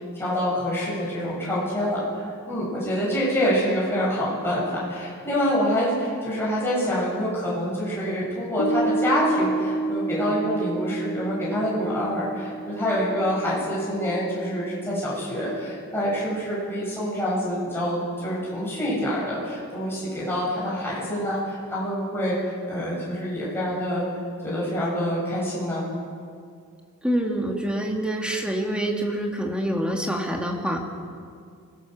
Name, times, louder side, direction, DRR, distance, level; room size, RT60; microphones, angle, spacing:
voice 1, 0.1-22.4 22.7-24.0 24.4-25.8, equal, 10° left, -7 dB, 7.7 m, -26 dB
Piano, 8.6-15.3, right 2 dB, 50° left, 0.8 m, -30 dB
voice 2, 27.0-30.9, right 1 dB, 5° right, 0 dB, 2.1 m, -26 dB
24.5 x 17.0 x 6.5 m, 2.2 s
head